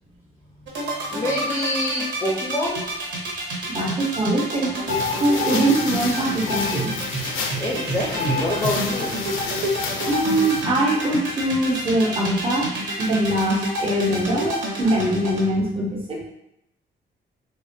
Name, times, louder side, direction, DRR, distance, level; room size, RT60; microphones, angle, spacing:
sound 1, 0.7-15.4, right 2 dB, 70° right, 0.8 m, -28 dB
voice 1, 1.1-2.8 7.6-9.2, left 1 dB, 15° left, -5 dB, 0.5 m, -26 dB
voice 2, 3.7-4.9 5.2-6.9 10.1-12.7 13.0-16.2, right 1 dB, 30° right, -2 dB, 0.6 m, -22 dB
sound 2, 4.9-10.6, left 5 dB, 90° left, 0.4 m, -29 dB
3.1 x 2.1 x 2.6 m, 0.82 s
wide cardioid pair, 150°, 20 cm